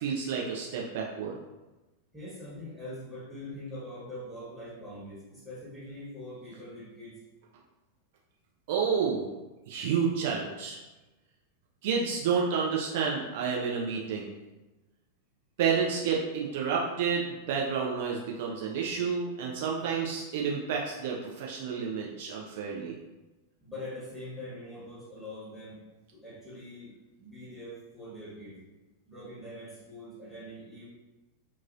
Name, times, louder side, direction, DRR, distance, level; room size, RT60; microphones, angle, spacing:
voice 1, 0.0-1.4 8.7-9.3 9.7-10.8 11.8-14.3 15.6-22.9, right 6 dB, 50° right, -2 dB, 0.4 m, -30 dB
voice 2, 2.1-7.2 23.6-25.9 26.1-26.9 27.2-28.6 29.0-30.9, left 1 dB, 10° right, -10 dB, 1.2 m, -43 dB
2.9 x 2.4 x 2.5 m, 1.1 s
figure-of-eight pair, 90°, 0 cm